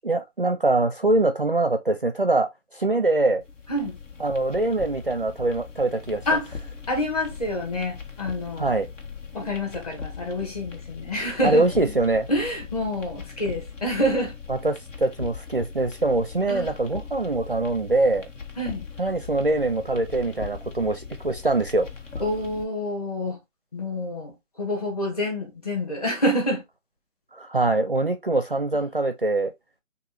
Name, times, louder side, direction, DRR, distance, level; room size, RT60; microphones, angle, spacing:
voice 1, 0.0-3.4 4.2-6.2 8.6-8.9 11.4-12.3 14.5-18.3 19.0-21.9 27.3-29.5, right 2 dB, 45° right, 0.4 m, -23 dB
sound 1, 3.4-22.6, left 5 dB, 70° left, 1.6 m, -40 dB
voice 2, 6.9-8.7 9.3-11.9 12.3-14.3 16.5-16.7 18.6-18.9 22.2-23.4 23.7-26.6, left 1 dB, 30° left, 1.7 m, -27 dB
6.2 x 2.6 x 3.2 m
hypercardioid pair, 175°, 38 cm